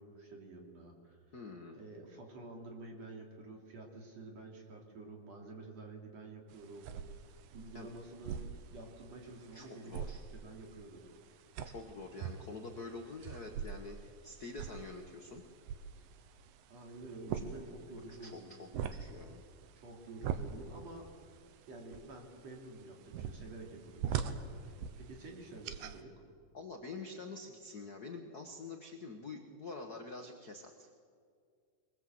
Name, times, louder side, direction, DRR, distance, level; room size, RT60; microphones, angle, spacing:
voice 1, 0.0-1.4 1.7-6.9 7.3-8.4 8.7-10.0 10.3-11.1 16.0-16.1 16.7-18.6 19.8-21.3 21.7-26.1, right 2 dB, 50° right, 1 dB, 3.8 m, -50 dB
voice 2, 1.3-1.8 7.7-7.9 9.5-10.2 11.6-15.4 18.1-19.4 26.5-30.9, left 3 dB, 80° left, 4 dB, 0.8 m, -47 dB
sound 1, 6.5-26.0, right 7 dB, 85° right, 2.7 m, -44 dB
22.5 x 21.5 x 7.8 m, 2.2 s
omnidirectional pair, 3.9 m